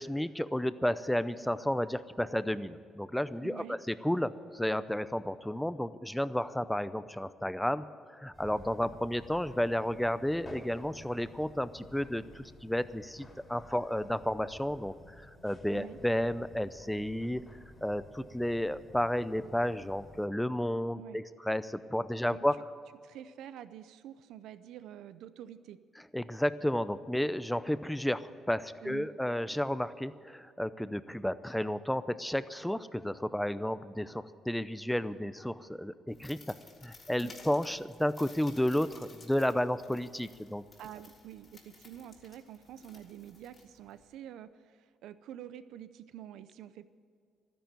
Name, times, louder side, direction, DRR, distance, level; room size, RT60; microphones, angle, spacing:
voice 1, 0.0-7.9 8.1-17.4 17.8-22.6 26.1-36.5 36.8-40.6, left 1 dB, 5° left, 14 dB, 0.6 m, -32 dB
voice 2, 3.4-3.8 15.7-16.0 20.9-21.2 22.3-22.4 23.0-25.8 28.8-29.1 37.2-37.4 40.8-46.8, right 11 dB, 85° right, 13 dB, 0.7 m, -47 dB
sound 1, 8.3-20.3, left 1 dB, 25° left, 3.0 m, -53 dB
sound 2, 36.1-44.1, left 3 dB, 45° left, 3.4 m, -56 dB
12.5 x 10.5 x 9.0 m, 2.2 s
cardioid pair, 90°, 0 cm